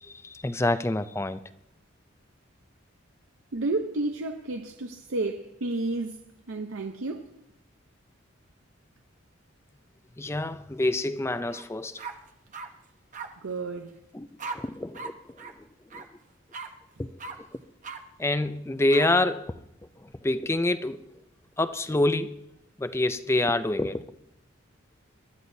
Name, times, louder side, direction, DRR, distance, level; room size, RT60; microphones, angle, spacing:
voice 1, 0.0-1.4 10.2-12.0 14.1-14.3 14.5-15.1 15.9-16.1 17.0-17.1 18.2-19.6 20.2-21.0 21.6-22.4 22.8-24.0, left 2 dB, 15° left, 0.4 m, -26 dB
voice 2, 3.5-6.2 6.5-7.3 13.4-14.0, right 2 dB, 85° right, 0.7 m, -31 dB
sound 1, 11.5-11.6 12.0-12.7 13.1-13.3 14.4-14.6 14.9-15.1 15.4-15.5 15.9-16.0 16.5-16.7 17.2-17.3 17.8-18.0 18.9-19.1, right 4 dB, 40° right, 0.9 m, -37 dB
22.5 x 12.5 x 2.7 m
head